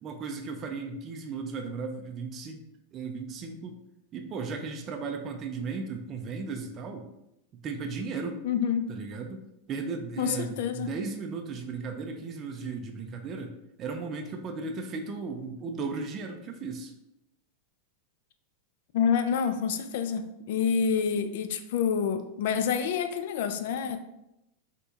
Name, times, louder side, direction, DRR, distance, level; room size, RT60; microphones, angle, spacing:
voice 1, 0.0-3.7 4.1-7.1 7.5-8.4 8.9-9.4 9.7-13.5 13.8-16.9, right 4 dB, 30° right, 3 dB, 0.4 m, -36 dB
voice 2, 8.4-8.8 10.2-10.9 18.9-24.0, left 7 dB, 65° left, 9 dB, 0.3 m, -27 dB
4.2 x 2.8 x 2.4 m, 0.85 s
supercardioid pair, 145°, 0 cm